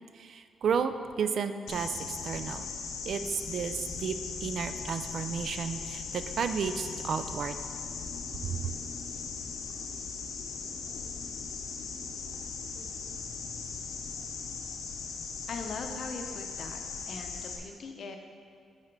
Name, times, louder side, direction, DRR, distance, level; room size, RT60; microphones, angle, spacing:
voice 1, 0.1-2.7 3.1-7.6 8.4-8.7, right 6 dB, 55° right, 10 dB, 0.3 m, -32 dB
sound 1, 1.7-17.6, left 5 dB, 85° left, 0.8 m, -39 dB
voice 2, 15.5-16.8 17.0-18.2, left 4 dB, 50° left, 4 dB, 0.7 m, -40 dB
8.8 x 4.3 x 4.5 m, 2.2 s
cardioid pair, 140°, 0 cm